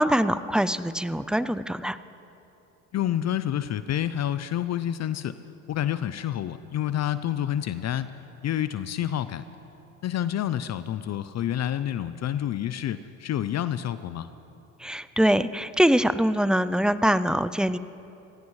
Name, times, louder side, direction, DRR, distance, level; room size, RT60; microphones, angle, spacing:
voice 1, 0.0-2.0 14.8-17.8, equal, ahead, 14 dB, 0.3 m, -23 dB
voice 2, 2.9-5.4 5.7-8.1 8.4-9.5 10.0-14.3, left 11 dB, 45° left, 13 dB, 0.6 m, -28 dB
24.0 x 16.5 x 3.2 m, 2.9 s
hypercardioid pair, 70°, 39 cm